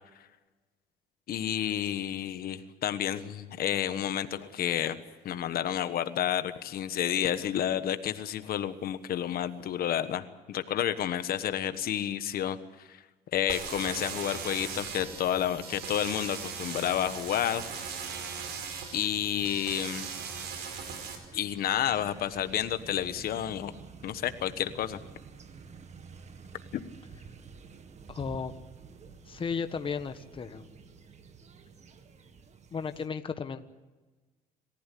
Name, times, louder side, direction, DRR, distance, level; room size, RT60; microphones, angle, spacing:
voice 1, 1.3-5.0 5.2-13.0 13.3-17.6 18.9-20.1 21.3-23.7 24.0-25.0 26.7-26.8, left 10 dB, 60° left, 11 dB, 1.3 m, -30 dB
sound 1, 3.7-4.0 4.2-5.0 5.4-5.6 6.4-7.6 8.0-8.8 9.5-9.9, left 10 dB, 80° left, 2.1 m, -51 dB
sound 2, 13.5-21.2, right 6 dB, 85° right, 4.9 m, -39 dB
sound 3, 14.1-33.1, right 5 dB, 40° right, 1.9 m, -51 dB
voice 2, 28.1-28.5 29.3-30.7 32.7-33.7, left 6 dB, 30° left, 9 dB, 1.2 m, -34 dB
27.0 x 15.0 x 8.4 m, 1.2 s
cardioid pair, 110°, 17 cm